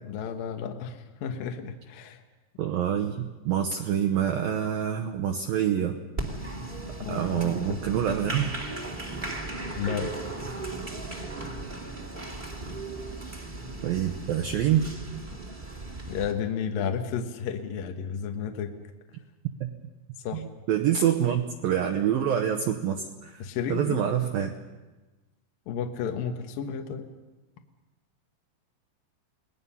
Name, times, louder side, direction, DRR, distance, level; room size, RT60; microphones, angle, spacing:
voice 1, 0.1-2.2 7.0-7.8 9.8-10.1 16.1-18.7 20.2-20.5 23.4-24.0 25.7-27.1, left 7 dB, 65° left, 4 dB, 2.3 m, -32 dB
voice 2, 2.6-6.0 7.1-8.5 13.8-14.9 19.6-19.7 20.3-20.4 20.7-23.4 23.7-24.6, right 9 dB, 80° right, 4 dB, 2.1 m, -26 dB
Applause, 6.2-16.3, right 2 dB, 20° right, 1.2 m, -36 dB
29.0 x 20.0 x 5.6 m, 1.2 s
omnidirectional pair, 5.5 m